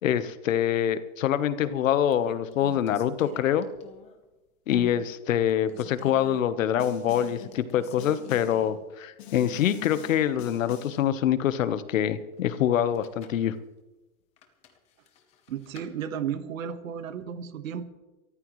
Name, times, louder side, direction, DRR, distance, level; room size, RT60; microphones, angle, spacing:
voice 1, 0.0-3.7 4.7-13.5, left 10 dB, 65° left, 12 dB, 1.2 m, -25 dB
sound 1, 1.3-1.7 2.1-4.2 4.7-5.0 5.4-6.4 7.1-8.9 9.2-9.3 12.8-13.5 14.4-15.9, left 6 dB, 15° left, 0.9 m, -46 dB
Snare drum, 6.8-7.5 8.0-8.7 9.2-11.1, left 8 dB, 45° left, 2.9 m, -45 dB
voice 2, 15.5-17.9, right 8 dB, 65° right, 10 dB, 1.6 m, -33 dB
24.5 x 14.0 x 3.2 m, 1.1 s
supercardioid pair, 170°, 43 cm